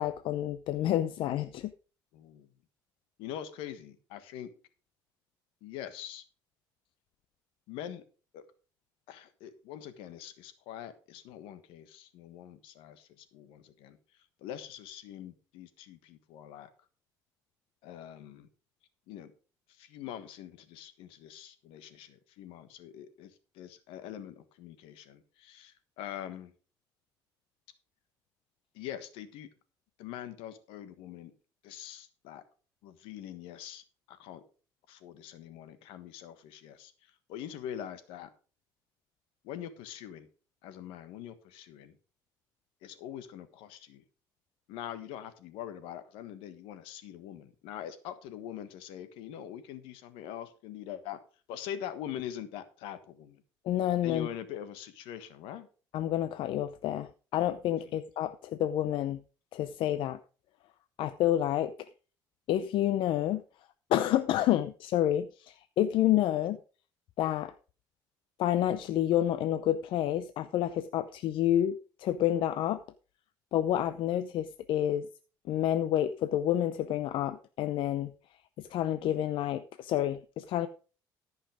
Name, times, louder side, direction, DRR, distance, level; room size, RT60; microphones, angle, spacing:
voice 1, 0.0-1.7 53.6-54.3 55.9-59.2 59.5-60.2 61.0-61.7 62.5-63.4 63.9-66.6 67.2-67.5 68.4-72.8 73.5-75.1 75.5-78.1 78.6-80.7, left 12 dB, 70° left, 0.6 m, -29 dB
voice 2, 2.1-2.5 3.2-4.5 5.6-6.2 7.7-8.0 8.3-8.4 9.1-16.7 17.8-18.5 19.1-19.3 19.7-26.5 28.7-29.5 30.0-31.3 31.6-32.4 32.8-34.4 34.9-38.3 39.4-40.3 40.6-41.9 42.8-44.0 44.7-51.2 51.5-53.4 54.0-55.7 57.8-57.9, left 10 dB, 85° left, 1.4 m, -43 dB
14.0 x 5.7 x 4.9 m
cardioid pair, 95°, 9 cm